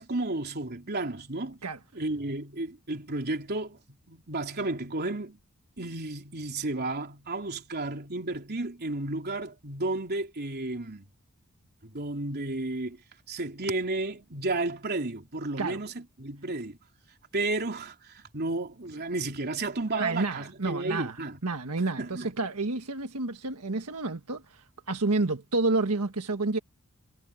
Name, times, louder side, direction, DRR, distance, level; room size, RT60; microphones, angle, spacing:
voice 1, 0.0-1.6 1.9-3.8 4.1-5.4 5.8-11.0 11.8-13.0 13.3-16.8 17.3-21.4 22.0-22.3, right 2 dB, 45° right, 3.4 m, -32 dB
voice 2, 20.0-26.6, right 3 dB, 85° right, 1.5 m, -30 dB
head